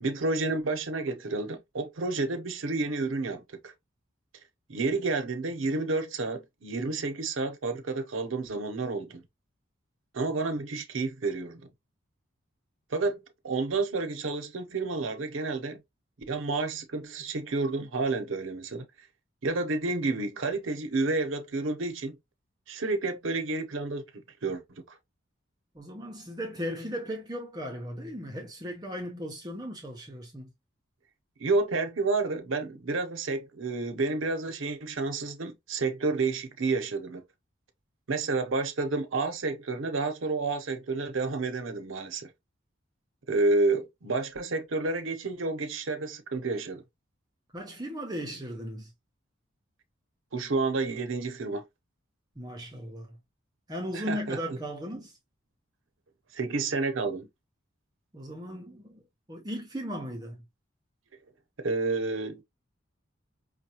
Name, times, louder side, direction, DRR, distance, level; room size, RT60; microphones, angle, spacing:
voice 1, 0.0-3.7 4.7-9.2 10.1-11.7 12.9-15.8 16.3-19.1 19.4-22.2 22.7-24.1 24.4-25.0 31.4-37.2 38.1-42.3 43.3-46.8 50.3-51.6 53.9-54.4 56.3-57.3 61.6-62.4, right 3 dB, 75° right, 0.7 m, -30 dB
voice 2, 25.7-30.5 47.5-48.9 52.4-53.2 53.7-55.2 58.1-59.0 59.3-60.4, equal, 20° right, 0.6 m, -37 dB
5.3 x 2.2 x 2.8 m
head